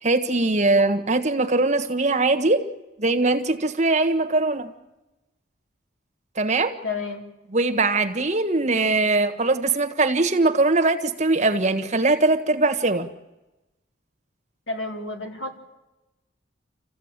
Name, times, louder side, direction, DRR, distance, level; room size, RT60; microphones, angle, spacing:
voice 1, 0.0-2.7 3.0-4.7 6.4-6.8 7.5-13.1, right 2 dB, 40° right, 1.5 m, -21 dB
voice 2, 6.8-7.2 9.1-9.2 14.7-15.6, left 3 dB, 90° left, 3.7 m, -31 dB
27.5 x 15.5 x 9.0 m
head